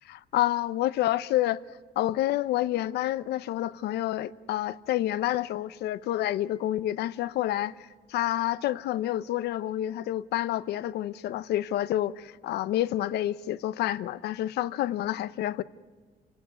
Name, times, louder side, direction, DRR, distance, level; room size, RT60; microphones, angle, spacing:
voice 1, 0.1-1.6 2.0-15.6, left 13 dB, 75° left, 0.8 m, -28 dB
28.5 x 18.0 x 9.6 m
cardioid pair, 110°, 17 cm